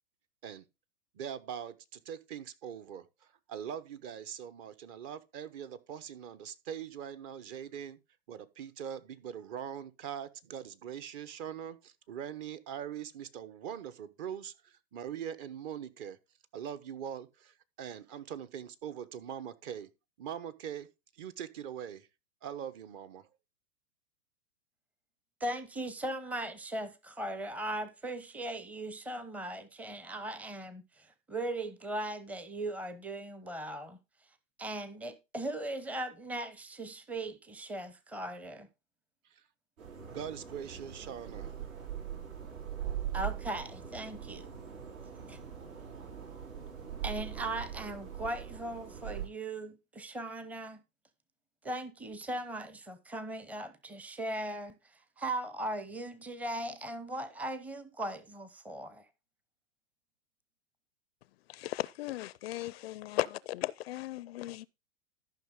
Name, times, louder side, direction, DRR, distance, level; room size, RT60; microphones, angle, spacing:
voice 1, 1.1-8.0 8.3-16.2 16.5-19.9 20.2-20.9 21.1-22.1 22.4-23.3 39.3-39.4 40.1-41.5, right 9 dB, 40° right, 1.1 m, -42 dB
voice 2, 25.4-34.0 34.6-38.7 43.1-44.5 45.3-45.4 47.0-50.8 51.6-54.8 55.2-59.1, right 1 dB, 5° right, 0.7 m, -38 dB
sound 1, 39.8-49.3, right 9 dB, 75° right, 6.5 m, -41 dB
voice 3, 61.5-64.7, left 16 dB, 50° left, 0.5 m, -36 dB
13.0 x 5.9 x 3.7 m
hypercardioid pair, 125°, 40 cm